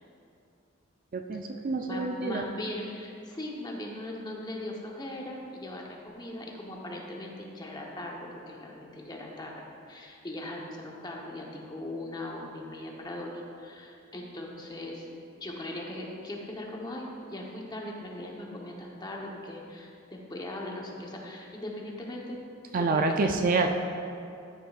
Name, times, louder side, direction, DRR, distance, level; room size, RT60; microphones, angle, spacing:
voice 1, 1.1-2.4 22.7-23.7, right 3 dB, 40° right, 5 dB, 0.4 m, -27 dB
voice 2, 1.8-15.1 15.4-22.4 22.8-23.7, left 1 dB, 20° left, -1 dB, 1.0 m, -39 dB
13.5 x 6.5 x 2.4 m, 2.5 s
head